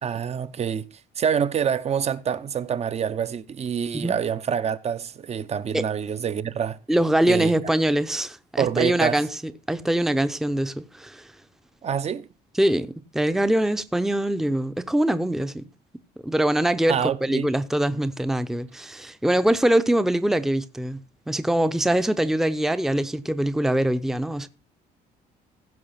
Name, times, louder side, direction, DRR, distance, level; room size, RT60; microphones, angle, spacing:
voice 1, 0.0-0.9 1.2-6.8 7.3-7.5 8.6-9.2 11.8-12.3 16.9-17.5, right 8 dB, 40° right, 0.9 m, -26 dB
voice 2, 6.9-11.3 12.6-15.7 16.2-21.0 21.3-24.5, right 1 dB, ahead, 0.7 m, -23 dB
15.5 x 5.6 x 5.7 m
cardioid pair, 110°, 17 cm